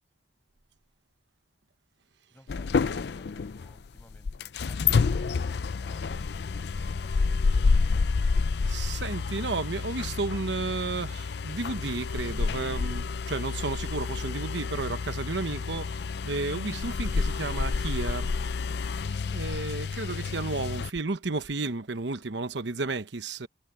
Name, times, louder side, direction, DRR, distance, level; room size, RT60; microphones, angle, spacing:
voice 1, 2.3-7.6, equal, 10° left, 6.4 m, -57 dB
sound 1, 2.5-20.9, left 4 dB, 65° left, 0.4 m, -29 dB
voice 2, 8.7-18.3 19.1-23.5, right 3 dB, 75° right, 1.0 m, -33 dB
head